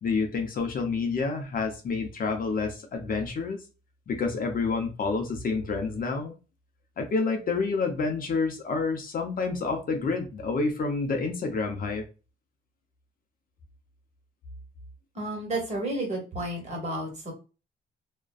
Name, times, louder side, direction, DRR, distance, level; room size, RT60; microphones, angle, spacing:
voice 1, 0.0-3.6 4.1-6.3 7.0-12.1, left 4 dB, 45° left, 4 dB, 0.6 m, -28 dB
voice 2, 15.1-17.3, right 1 dB, 35° right, 0 dB, 1.3 m, -31 dB
2.4 x 2.2 x 2.3 m, 0.32 s
cardioid pair, 90°, 20 cm